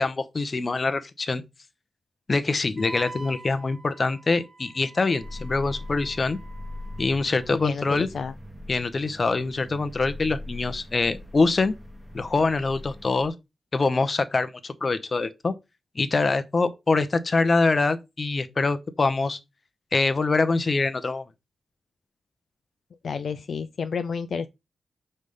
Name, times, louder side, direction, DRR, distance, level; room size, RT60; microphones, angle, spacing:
voice 1, 0.0-1.4 2.3-6.4 7.0-8.1 8.7-11.8 12.1-13.3 13.7-15.5 16.0-19.4 19.9-21.2, left 3 dB, 35° left, 0.7 m, -24 dB
Wind instrument woodwind instrument, 2.8-7.4, right 2 dB, 35° right, 1.0 m, -45 dB
sound 1, 5.2-13.3, left 1 dB, 10° right, 1.2 m, -41 dB
voice 2, 7.5-8.3 23.0-24.5, left 6 dB, 60° left, 0.4 m, -30 dB
5.3 x 3.3 x 5.4 m
wide cardioid pair, 115°, 0 cm